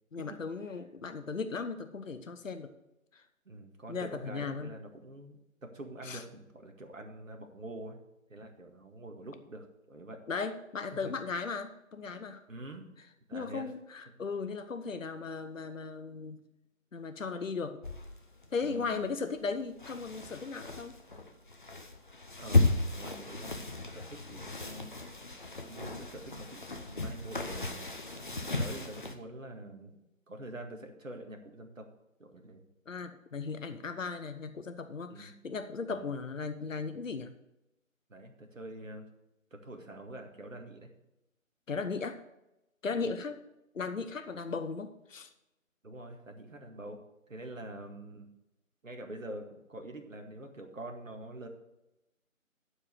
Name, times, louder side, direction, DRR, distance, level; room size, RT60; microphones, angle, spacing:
voice 1, 0.1-2.7 3.1-3.2 3.9-4.7 6.0-6.2 10.3-12.4 13.3-16.5 16.9-17.8 18.5-20.9 32.9-37.3 41.7-42.2 42.8-43.4 43.7-45.3, left 4 dB, 65° left, 9 dB, 0.9 m, -37 dB
voice 2, 3.5-8.0 8.3-10.2 11.0-11.1 12.5-12.9 13.3-13.7 14.1-14.2 18.6-19.1 22.4-24.9 25.5-28.0 28.6-30.0 30.3-31.9 32.2-32.6 35.1-35.3 35.9-36.1 38.1-39.1 39.5-40.9 43.0-43.1 45.8-47.0 47.3-48.3 48.8-51.5, right 1 dB, 70° right, 3 dB, 2.0 m, -46 dB
sound 1, 17.8-29.1, left 2 dB, 35° left, 0.8 m, -34 dB
12.0 x 4.9 x 6.5 m, 0.90 s
figure-of-eight pair, 160°, 41 cm